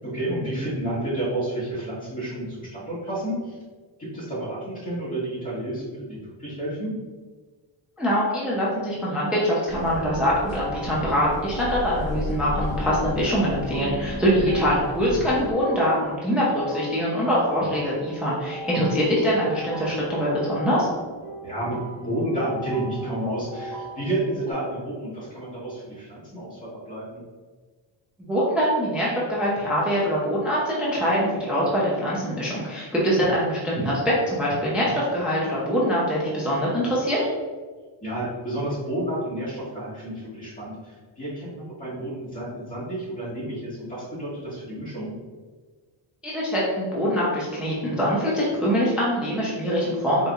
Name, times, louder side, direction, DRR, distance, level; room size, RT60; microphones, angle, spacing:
voice 1, 0.0-3.6 4.0-6.9 14.5-14.6 21.4-21.8 22.0-27.2 38.0-45.1, right 1 dB, 15° left, -9 dB, 1.4 m, -30 dB
voice 2, 8.0-20.9 28.2-37.2 46.2-50.3, equal, ahead, -6 dB, 0.5 m, -23 dB
sound 1, 9.7-15.5, left 1 dB, 65° left, 0.7 m, -33 dB
sound 2, 10.4-24.5, right 1 dB, 50° right, 0.9 m, -38 dB
4.5 x 2.6 x 2.3 m, 1.4 s
wide cardioid pair, 170°, 49 cm